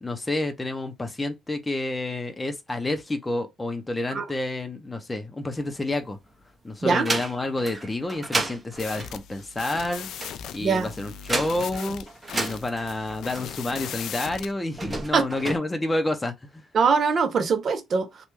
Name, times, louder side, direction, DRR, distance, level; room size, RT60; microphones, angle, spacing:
voice 1, 0.0-6.2 6.6-10.1 10.5-12.0 12.3-16.6, left 2 dB, 15° left, 0.7 m, -29 dB
sound 1, 5.6-6.4 6.8-13.9 14.6-15.6, right 2 dB, 25° right, 0.9 m, -32 dB
voice 2, 6.8-7.1 10.6-10.9 15.1-15.3 16.7-18.3, right 5 dB, 50° right, 0.7 m, -22 dB
sound 2, 8.7-14.5, left 9 dB, 80° left, 0.3 m, -38 dB
3.2 x 2.2 x 3.1 m
cardioid pair, 90°, 0 cm